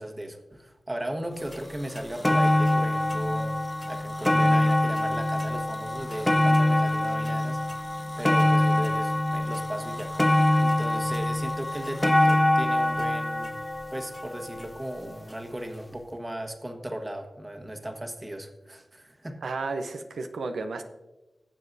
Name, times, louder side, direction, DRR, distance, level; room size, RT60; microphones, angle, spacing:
voice 1, 0.0-3.6 3.9-7.9 8.2-13.6 13.9-19.4, right 1 dB, 20° right, 4 dB, 1.4 m, -37 dB
sound 1, 1.5-1.6 2.0-15.1 15.9-16.0, left 1 dB, 15° left, 0.4 m, -24 dB
voice 2, 19.4-20.8, right 3 dB, 90° right, 6 dB, 0.6 m, -32 dB
18.5 x 7.6 x 2.7 m, 1.1 s
wide cardioid pair, 75°, 0 cm